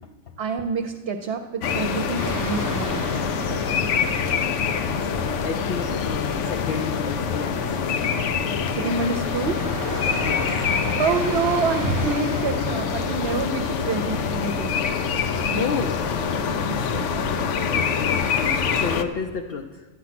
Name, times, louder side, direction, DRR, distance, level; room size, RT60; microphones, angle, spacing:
voice 1, 0.4-3.0 8.7-9.6 11.0-14.8 15.4-15.7 16.5-17.2, right 4 dB, 60° right, 5 dB, 0.9 m, -27 dB
sound 1, 1.6-19.0, left 6 dB, 85° left, 1.0 m, -25 dB
sound 2, 2.2-17.0, right 2 dB, 20° right, 0.6 m, -38 dB
voice 2, 5.0-8.0 10.2-10.6 15.6-16.1 17.7-19.9, left 6 dB, 60° left, 4 dB, 0.8 m, -31 dB
12.0 x 8.4 x 5.9 m, 1.3 s
omnidirectional pair, 1.2 m